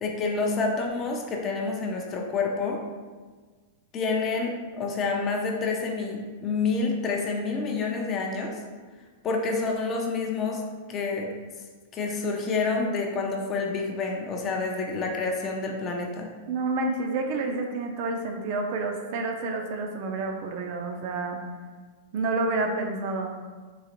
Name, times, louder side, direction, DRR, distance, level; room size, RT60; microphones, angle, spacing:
voice 1, 0.0-2.8 3.9-8.6 9.2-10.6 10.9-11.3 11.9-16.3, left 4 dB, 25° left, 1 dB, 0.4 m, -28 dB
voice 2, 16.5-21.4 22.1-23.3, right 3 dB, 45° right, 3 dB, 0.4 m, -29 dB
3.8 x 2.5 x 2.8 m, 1.4 s
supercardioid pair, 155°, 0 cm